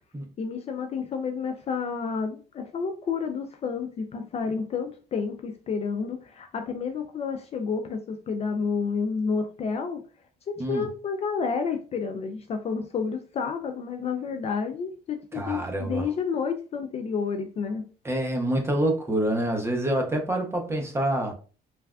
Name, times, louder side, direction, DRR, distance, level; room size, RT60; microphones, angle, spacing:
voice 1, 0.4-10.0 10.7-17.8, left 5 dB, 40° left, 0.4 m, -30 dB
voice 2, 15.3-16.1 18.0-21.3, right 1 dB, 15° right, 0.7 m, -26 dB
3.2 x 2.4 x 2.2 m
cardioid pair, 110°, 17 cm